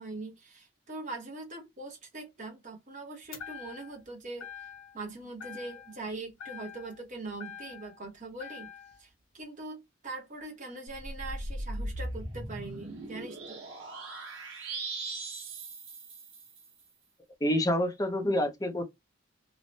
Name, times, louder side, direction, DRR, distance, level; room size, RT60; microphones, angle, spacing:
voice 1, 0.0-4.5 4.9-8.7 9.0-13.6, right 2 dB, 40° right, 0.9 m, -42 dB
sound 1, 3.3-4.1 4.4-5.1 5.4-6.1 6.4-8.0 8.4-9.0, left 8 dB, 90° left, 1.0 m, -45 dB
sound 2, 10.9-16.7, right 2 dB, 80° right, 0.9 m, -39 dB
voice 2, 17.4-18.8, left 1 dB, 15° left, 0.6 m, -27 dB
3.1 x 2.2 x 2.6 m
head